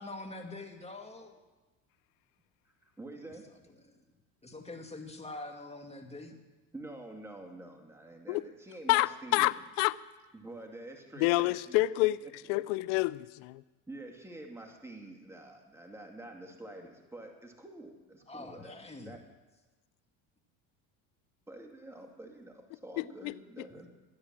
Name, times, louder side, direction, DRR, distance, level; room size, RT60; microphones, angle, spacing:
voice 1, 0.0-1.4 3.2-3.3 3.8-4.0 4.4-6.4 18.3-19.2 23.7-23.9, left 2 dB, 15° left, 3 dB, 2.1 m, -45 dB
voice 2, 2.8-3.4 6.7-9.5 10.3-12.6 13.9-18.8 19.0-19.2 21.5-23.9, right 2 dB, 5° right, 2 dB, 2.3 m, -47 dB
voice 3, 8.9-10.0 11.2-12.2 12.5-13.6 23.0-23.3, left 20 dB, 80° left, 19 dB, 0.6 m, -28 dB
14.5 x 9.7 x 7.4 m, 1.2 s
supercardioid pair, 90°, 43 cm